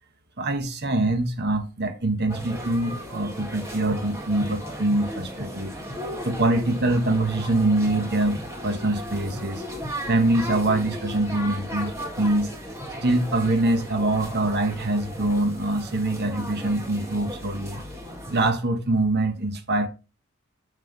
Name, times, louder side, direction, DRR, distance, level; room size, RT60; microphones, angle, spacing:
voice 1, 0.4-5.7 6.2-9.6 10.1-12.5 13.0-17.8 18.3-19.9, right 2 dB, 45° right, 1.2 m, -24 dB
sound 1, 2.3-18.5, equal, 15° right, 1.7 m, -36 dB
9.4 x 3.2 x 6.7 m
head